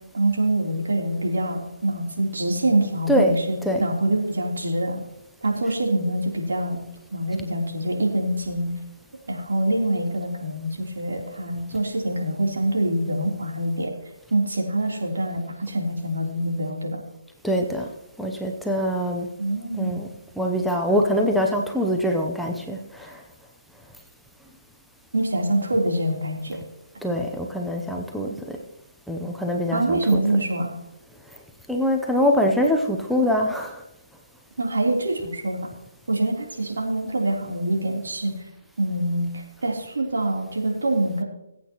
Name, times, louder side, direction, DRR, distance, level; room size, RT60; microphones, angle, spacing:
voice 1, 0.1-5.0 5.4-6.8 7.1-8.7 9.3-13.9 14.3-17.0 19.4-20.0 25.1-26.6 29.7-30.7 34.6-35.6 36.1-38.3 38.8-41.2, right 1 dB, 80° right, 0 dB, 3.4 m, -25 dB
voice 2, 3.1-3.4 3.6-3.9 17.4-17.9 18.2-19.3 19.8-20.1 20.4-23.2 27.0-28.6 29.1-30.4 31.7-33.8, equal, ahead, 1 dB, 0.7 m, -24 dB
21.5 x 8.4 x 3.0 m, 0.87 s
hypercardioid pair, 155°, 0 cm